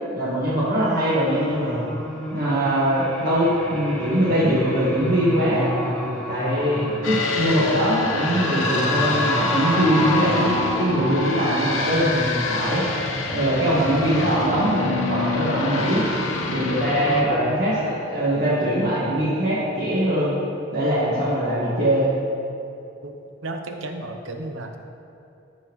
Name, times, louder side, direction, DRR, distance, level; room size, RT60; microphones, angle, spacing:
voice 1, 0.1-1.9 2.3-5.7 6.3-12.9 13.3-16.1 16.5-20.3 20.7-22.1, equal, 50° right, -9 dB, 1.7 m, -22 dB
sound 1, 1.0-17.6, equal, 5° left, 0.9 m, -30 dB
sound 2, 7.0-17.2, left 3 dB, 85° left, 1.0 m, -27 dB
voice 2, 23.4-24.8, right 2 dB, 75° right, 5 dB, 0.8 m, -33 dB
15.5 x 5.4 x 3.1 m, 2.8 s
head